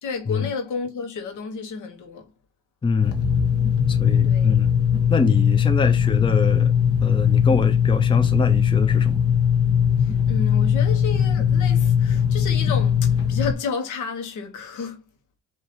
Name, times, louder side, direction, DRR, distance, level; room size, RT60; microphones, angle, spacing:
voice 1, 0.0-2.3 4.2-4.6 10.0-15.0, left 5 dB, 80° left, 1.3 m, -31 dB
voice 2, 2.8-3.2 3.9-4.7 5.1-6.7 7.0-9.3, left 4 dB, 15° left, 0.6 m, -24 dB
sound 1, 3.0-13.5, left 8 dB, 50° left, 1.2 m, -19 dB
5.0 x 2.9 x 2.9 m
cardioid pair, 90°, 30 cm